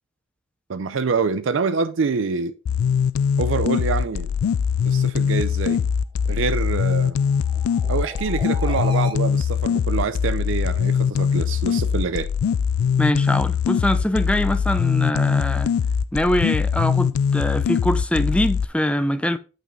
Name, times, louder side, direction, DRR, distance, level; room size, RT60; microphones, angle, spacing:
voice 1, 0.7-2.5 3.4-4.3 4.9-5.8 6.3-7.2 7.9-12.3, right 5 dB, 65° right, 0.5 m, -25 dB
sound 1, 2.7-18.7, left 7 dB, 85° left, 0.3 m, -22 dB
sound 2, 6.9-9.1, right 4 dB, 25° right, 1.0 m, -37 dB
voice 2, 13.0-15.7 16.1-19.4, left 1 dB, 5° left, 0.5 m, -23 dB
8.5 x 6.1 x 4.0 m
head